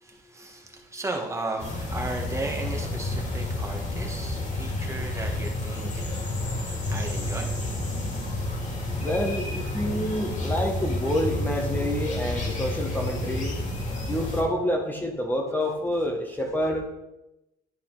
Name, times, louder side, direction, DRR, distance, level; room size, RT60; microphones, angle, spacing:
voice 1, 0.0-8.3, right 2 dB, 15° right, 1 dB, 1.3 m, -36 dB
sound 1, 1.6-14.4, left 2 dB, 45° left, 2.5 m, -30 dB
voice 2, 8.9-13.5 14.1-16.9, equal, 10° left, 1 dB, 1.2 m, -28 dB
11.0 x 4.1 x 4.0 m, 0.91 s
cardioid pair, 110°, 17 cm